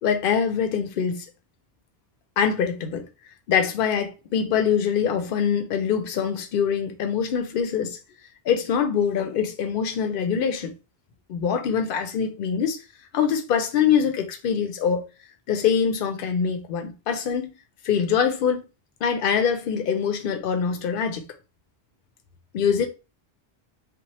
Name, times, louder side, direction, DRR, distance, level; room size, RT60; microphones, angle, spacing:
voice 1, 0.0-1.2 2.4-3.1 3.5-8.0 8.5-10.7 11.3-12.8 13.1-15.1 15.5-17.6 17.8-18.7 19.0-21.2 22.5-22.9, left 7 dB, 65° left, 0.7 m, -24 dB
2.9 x 2.0 x 2.9 m
omnidirectional pair, 1.0 m